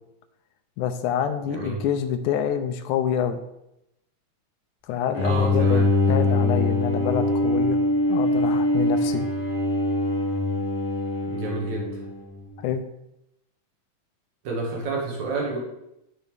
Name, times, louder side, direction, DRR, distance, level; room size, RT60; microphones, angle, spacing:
voice 1, 0.8-3.4 4.9-7.8 8.1-9.3 12.6-12.8, left 9 dB, 90° left, 7 dB, 2.1 m, -27 dB
voice 2, 1.5-1.8 5.2-5.9 11.3-12.0 14.4-15.6, right 3 dB, 70° right, -2 dB, 3.1 m, -29 dB
Bowed string instrument, 5.1-12.4, left 2 dB, 5° left, 2.8 m, -23 dB
9.4 x 8.2 x 3.4 m, 0.85 s
omnidirectional pair, 3.4 m